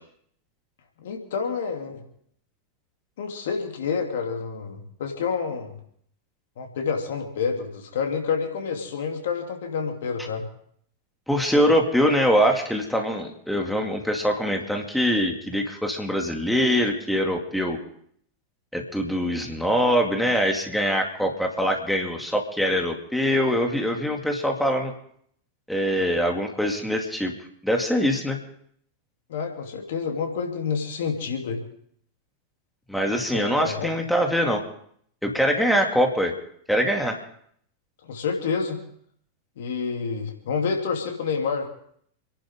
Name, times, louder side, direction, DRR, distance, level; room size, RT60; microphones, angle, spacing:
voice 1, 1.0-2.0 3.2-5.8 6.6-10.5 29.3-31.6 33.3-34.0 38.0-38.8 39.6-41.7, left 5 dB, 60° left, 3 dB, 2.9 m, -28 dB
voice 2, 11.3-17.8 18.7-24.9 25.7-27.3 27.6-28.4 32.9-34.6 35.2-36.4 36.7-37.2, equal, ahead, 2 dB, 2.3 m, -23 dB
29.0 x 11.0 x 3.6 m, 0.65 s
figure-of-eight pair, 90°, 0 cm